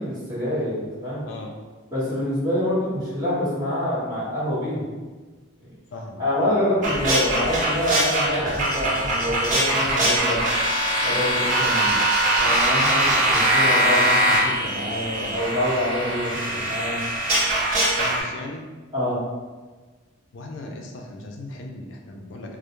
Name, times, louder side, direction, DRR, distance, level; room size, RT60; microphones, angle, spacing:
voice 1, 0.0-1.2 1.9-4.9 6.2-10.4 11.0-11.8 12.4-17.0 18.9-19.2, left 1 dB, 20° right, -12 dB, 1.1 m, -26 dB
voice 2, 5.9-6.9 11.8-12.0 15.1-15.3 18.0-18.6 20.3-22.6, left 2 dB, 65° left, 2 dB, 0.4 m, -37 dB
sound 1, 6.8-18.2, right 1 dB, 40° right, 0.6 m, -22 dB
2.3 x 2.0 x 2.9 m, 1.3 s
head